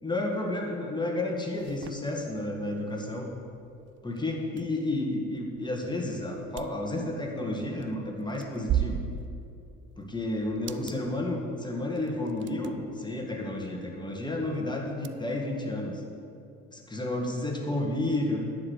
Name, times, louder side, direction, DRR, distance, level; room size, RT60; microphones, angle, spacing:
voice 1, 0.0-3.3 4.0-9.0 10.0-16.0 16.7-18.4, left 1 dB, 10° left, 0 dB, 2.0 m, -31 dB
sound 1, 1.5-15.1, right 9 dB, 35° right, 0.5 m, -40 dB
10.5 x 5.2 x 8.2 m, 2.6 s
hypercardioid pair, 65°, 37 cm